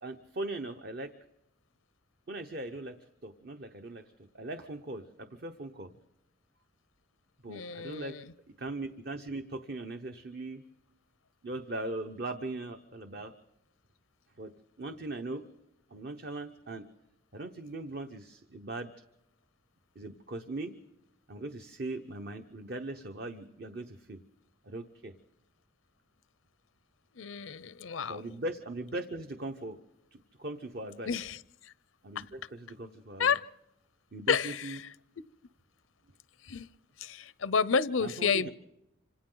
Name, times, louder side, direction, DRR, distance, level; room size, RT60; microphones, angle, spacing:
voice 1, 0.0-1.1 2.3-5.9 7.4-8.2 8.5-10.6 11.4-13.4 14.4-14.5 14.8-15.4 15.9-16.9 17.3-18.9 19.9-20.7 21.3-24.2 24.6-25.1 28.0-29.8 30.1-31.1 32.0-33.4 34.1-34.8 38.0-38.5, right 2 dB, 50° right, 6 dB, 0.9 m, -39 dB
voice 2, 7.5-8.1 27.2-28.2 31.1-31.4 33.2-33.4 34.3-34.5 36.5-36.7 37.0-38.5, left 6 dB, 80° left, 17 dB, 0.6 m, -29 dB
26.5 x 26.5 x 3.9 m, 0.88 s
head